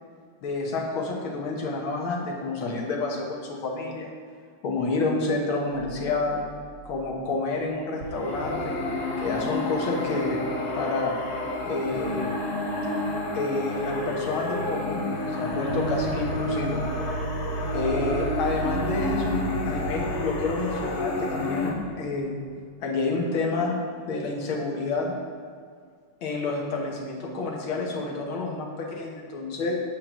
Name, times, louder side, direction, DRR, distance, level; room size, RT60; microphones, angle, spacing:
voice 1, 0.4-4.1 4.6-6.4 6.9-8.8 9.2-10.4 10.7-11.2 11.6-12.3 13.3-16.8 17.7-22.3 22.8-23.8 24.1-25.1 26.2-29.8, left 3 dB, 85° left, -1 dB, 1.9 m, -29 dB
sound 1, 5.9-7.2 7.5-7.6 8.0-12.4 15.5-22.6, right 5 dB, 65° right, 1.1 m, -36 dB
sound 2, 8.0-21.7, left 2 dB, 55° left, 1.4 m, -30 dB
8.3 x 7.4 x 3.0 m, 2.1 s
omnidirectional pair, 2.2 m